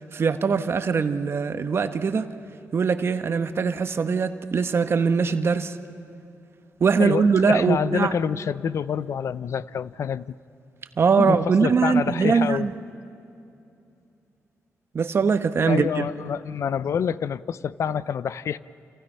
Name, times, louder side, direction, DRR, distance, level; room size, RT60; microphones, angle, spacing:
voice 1, 0.1-2.4 2.7-5.8 6.8-8.1 11.0-12.7 14.9-16.0, right 5 dB, 50° right, 1.1 m, -22 dB
voice 2, 7.0-10.4 11.2-12.7 15.7-18.6, left 7 dB, 65° left, 0.6 m, -27 dB
29.0 x 27.5 x 5.6 m
cardioid pair, 80°, 5 cm